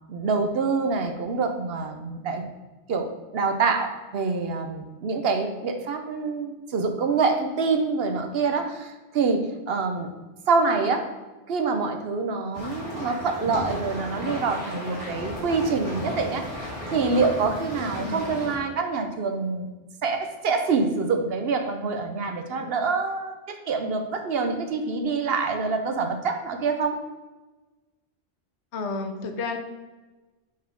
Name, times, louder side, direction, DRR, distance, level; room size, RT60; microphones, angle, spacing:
voice 1, 0.1-2.5 2.9-10.1 10.5-11.1 11.5-19.7 20.0-27.0, right 4 dB, 60° right, 5 dB, 0.8 m, -26 dB
sound 1, 12.5-18.6, equal, 80° right, 2.4 m, -34 dB
voice 2, 28.7-29.6, left 3 dB, 75° left, 6 dB, 1.0 m, -31 dB
5.3 x 4.1 x 5.1 m, 1.2 s
omnidirectional pair, 1.2 m